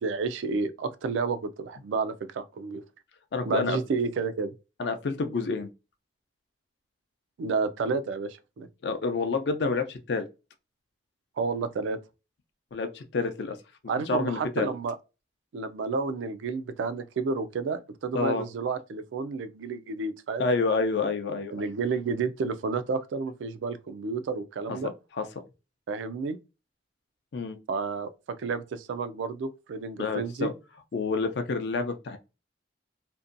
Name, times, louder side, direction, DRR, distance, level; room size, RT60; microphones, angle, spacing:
voice 1, 0.0-2.8 3.5-4.5 7.4-8.7 11.4-12.0 13.9-15.0 15.5-20.4 21.5-24.9 25.9-26.4 27.7-28.1 28.4-30.5, right 4 dB, 90° right, 0.3 m, -30 dB
voice 2, 3.3-3.8 4.8-5.7 8.8-10.3 12.7-13.6 14.1-14.7 18.1-18.4 20.4-21.5 24.7-25.4 27.3-27.6 30.0-30.5 30.9-32.2, left 4 dB, 65° left, 0.4 m, -28 dB
2.6 x 2.2 x 2.5 m
head